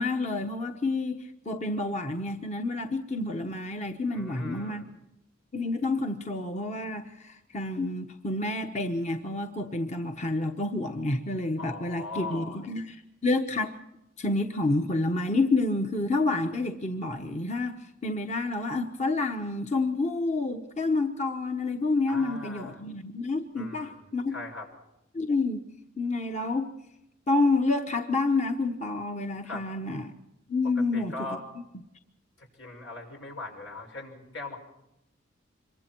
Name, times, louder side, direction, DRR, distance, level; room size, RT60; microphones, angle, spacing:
voice 1, 0.0-4.9 5.5-13.7 14.2-24.3 25.1-25.6 26.0-26.7 27.3-30.1 30.5-31.3, left 2 dB, 35° left, 5 dB, 1.1 m, -29 dB
voice 2, 4.1-4.8 11.6-12.6 22.1-22.8 23.5-24.7 29.4-29.7 30.8-31.4 32.4-34.6, left 2 dB, 85° left, 2 dB, 6.1 m, -40 dB
26.0 x 23.5 x 4.6 m, 0.87 s
head